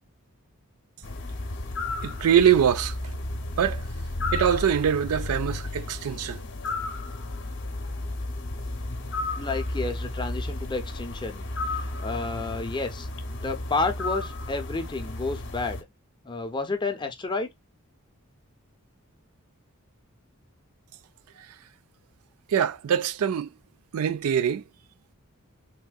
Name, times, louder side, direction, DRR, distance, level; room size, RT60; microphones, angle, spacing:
sound 1, 1.0-15.8, left 2 dB, 55° left, 0.7 m, -33 dB
voice 1, 2.0-3.0 3.6-3.9 4.3-6.4 22.5-23.5 23.9-24.6, right 8 dB, 80° right, 0.3 m, -23 dB
voice 2, 9.4-15.8 16.2-17.5, left 3 dB, 20° left, 0.6 m, -31 dB
3.6 x 2.6 x 2.3 m
head